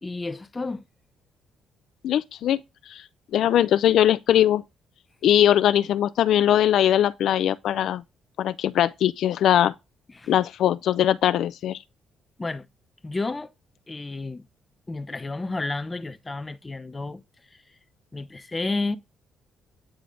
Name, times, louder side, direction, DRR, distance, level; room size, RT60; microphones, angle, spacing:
voice 1, 0.0-0.8 10.1-10.3 12.4-12.7 13.0-13.5 13.9-14.4 14.9-17.2 17.5-17.8 18.1-19.0, left 3 dB, 20° left, 0.8 m, -31 dB
voice 2, 2.0-2.6 2.9-3.0 3.3-4.6 5.2-8.0 8.4-9.7 10.3-11.8, left 11 dB, 75° left, 0.4 m, -21 dB
9.2 x 3.4 x 3.8 m
cardioid pair, 90°, 0 cm